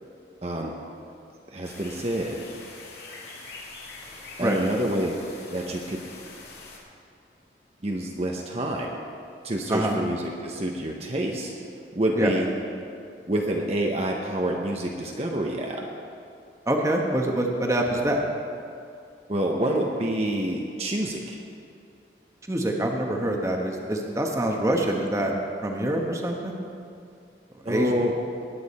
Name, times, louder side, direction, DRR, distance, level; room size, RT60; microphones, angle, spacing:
voice 1, 0.4-0.7 1.5-2.4 4.1-5.2 5.5-6.0 7.8-9.0 9.4-11.5 11.9-12.5 13.3-15.8 19.3-21.4 27.6-28.1, right 1 dB, 35° right, 0 dB, 0.9 m, -27 dB
sound 1, 1.6-6.8, left 3 dB, 65° left, 2.3 m, -43 dB
voice 2, 16.7-18.2 22.5-25.4 25.6-26.5 27.6-27.9, right 1 dB, 15° right, 1 dB, 1.1 m, -25 dB
19.5 x 8.6 x 4.2 m, 2.4 s
head